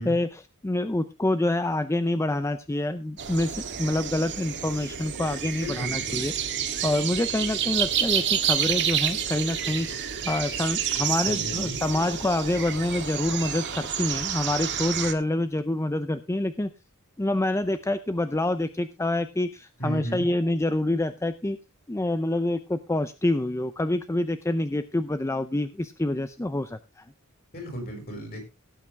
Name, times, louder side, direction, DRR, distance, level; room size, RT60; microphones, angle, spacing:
voice 1, 0.0-6.3 6.8-16.7 17.2-21.6 21.9-27.1, left 1 dB, 15° left, 11 dB, 0.5 m, -27 dB
sound 1, 3.2-15.1, right 8 dB, 55° right, 1.7 m, -29 dB
voice 2, 5.6-6.2 11.2-11.8 19.8-20.2 27.5-28.4, right 1 dB, 45° left, 2 dB, 6.1 m, -34 dB
17.0 x 8.5 x 3.4 m, 0.27 s
head